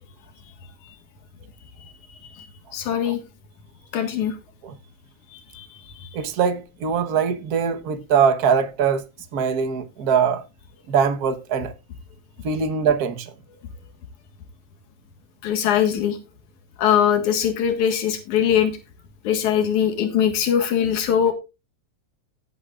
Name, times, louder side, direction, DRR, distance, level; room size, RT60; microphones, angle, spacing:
voice 1, 2.7-3.2 3.9-4.4 5.3-6.1 15.4-16.2 16.8-18.7 19.2-21.3, left 9 dB, 90° left, 3.0 m, -21 dB
voice 2, 6.1-9.0 9.3-10.4 10.9-11.7 12.4-13.3, right 6 dB, 55° right, 1.0 m, -22 dB
18.0 x 8.3 x 2.4 m
omnidirectional pair, 3.3 m